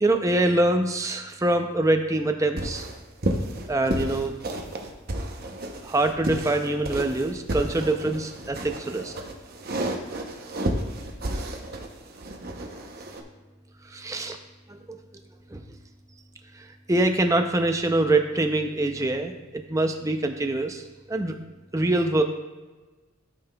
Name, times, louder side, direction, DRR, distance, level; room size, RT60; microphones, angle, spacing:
voice 1, 0.0-2.9 3.7-4.3 5.8-9.1 13.9-14.4 14.7-15.0 15.5-15.6 16.9-20.8 21.1-21.4 21.7-22.2, right 2 dB, 15° right, 5 dB, 0.4 m, -24 dB
sound 1, 2.6-13.2, right 1 dB, 45° right, 0.7 m, -32 dB
12.0 x 5.7 x 2.3 m, 1.2 s
head